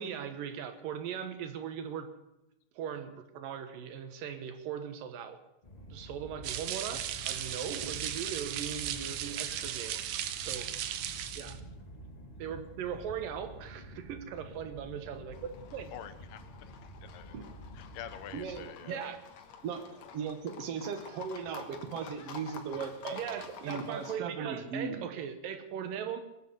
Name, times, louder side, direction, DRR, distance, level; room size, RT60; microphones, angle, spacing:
voice 1, 0.0-2.1 2.8-5.4 5.9-10.0 10.4-10.7 11.4-11.6 12.4-15.9 18.9-19.2 23.1-26.2, right 8 dB, 85° right, 8 dB, 3.0 m, -39 dB
sound 1, 5.6-18.7, equal, 45° left, 0.5 m, -49 dB
sound 2, 6.4-11.6, right 11 dB, 70° right, 1.9 m, -36 dB
Livestock farm animals working animals, 15.3-24.2, left 7 dB, 60° left, 2.3 m, -49 dB
voice 2, 15.9-17.4 17.7-19.1, left 10 dB, 85° left, 11 dB, 2.6 m, -47 dB
voice 3, 18.3-19.0 19.6-19.9 20.1-23.2 23.6-25.0, right 6 dB, 55° right, 7 dB, 2.3 m, -37 dB
20.5 x 7.9 x 8.5 m, 0.90 s
omnidirectional pair, 3.8 m